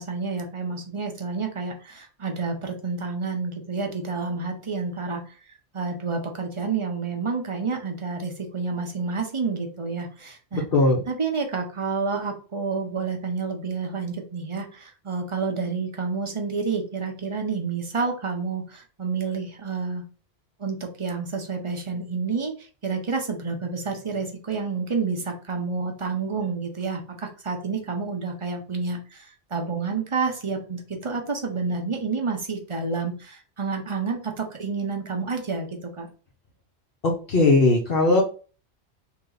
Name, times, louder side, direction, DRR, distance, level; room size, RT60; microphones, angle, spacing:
voice 1, 0.0-5.2 5.7-10.6 11.1-20.0 20.6-22.5 22.8-29.3 29.5-36.1, right 4 dB, 30° right, 3 dB, 0.8 m, -29 dB
voice 2, 10.5-11.0 37.0-38.2, left 2 dB, 60° left, -2 dB, 1.0 m, -19 dB
3.3 x 3.0 x 3.8 m, 0.37 s
omnidirectional pair, 1.1 m